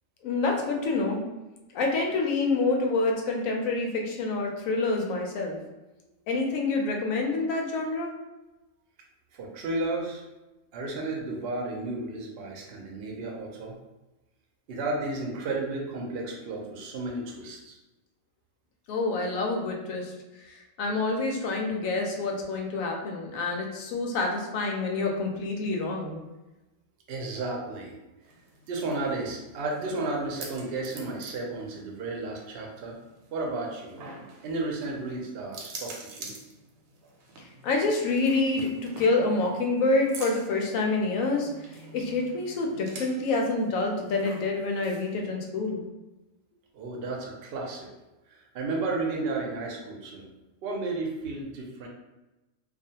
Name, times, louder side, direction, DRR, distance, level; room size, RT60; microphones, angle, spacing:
voice 1, 0.2-1.2 1.7-5.6 6.3-8.1 18.9-20.1 20.5-26.2 37.4-38.7 39.0-41.5 41.9-45.8, left 3 dB, 90° left, 1 dB, 1.0 m, -27 dB
voice 2, 9.3-10.2 10.7-13.8 14.7-17.8 27.1-27.9 28.7-33.0 33.3-33.9 34.4-36.3 46.7-47.9 48.3-50.2 50.6-51.9, right 2 dB, 60° right, -1 dB, 0.7 m, -33 dB
sound 1, 28.2-45.2, right 3 dB, 85° right, 1.0 m, -47 dB
2.4 x 2.3 x 2.7 m, 1.0 s
omnidirectional pair, 1.4 m